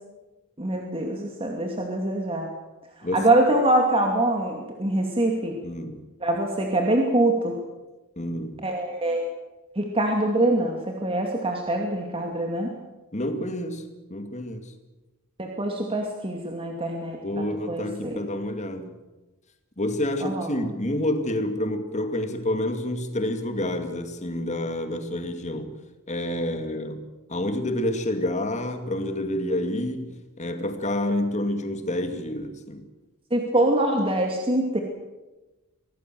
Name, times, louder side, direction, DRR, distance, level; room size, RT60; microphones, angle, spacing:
voice 1, 0.6-2.5 3.1-5.6 6.2-7.6 8.6-9.2 9.8-12.7 15.4-18.2 20.2-20.5 33.3-34.8, right 1 dB, 25° right, 1 dB, 2.5 m, -24 dB
voice 2, 5.6-6.0 8.2-8.6 13.1-14.7 17.2-19.0 19.8-25.7 26.1-32.8, left 1 dB, 35° left, 7 dB, 2.4 m, -28 dB
25.0 x 18.0 x 7.7 m, 1.1 s
head